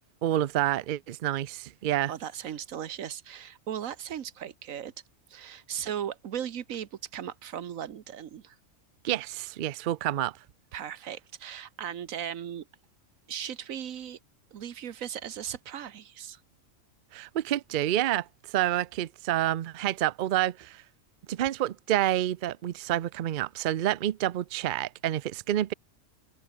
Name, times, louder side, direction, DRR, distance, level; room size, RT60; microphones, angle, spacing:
voice 1, 0.2-2.1 9.0-10.3 17.1-20.8 21.3-25.7, right 13 dB, 60° right, 0.5 m, -28 dB
voice 2, 2.1-4.9 5.3-8.6 10.7-12.7 13.3-14.2 14.5-16.4, right 9 dB, 85° right, 1.4 m, -37 dB
omnidirectional pair, 1.4 m